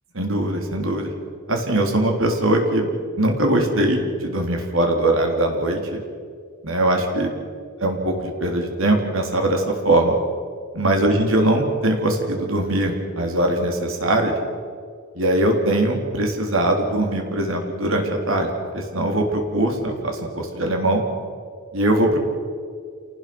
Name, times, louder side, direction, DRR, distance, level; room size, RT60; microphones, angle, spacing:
voice 1, 0.1-1.1 1.5-2.9 3.2-6.0 6.6-7.3 7.8-10.1 10.7-14.3 15.2-21.0 21.7-22.2, right 1 dB, 65° right, 2 dB, 3.7 m, -21 dB
28.5 x 19.0 x 6.2 m, 2.1 s
head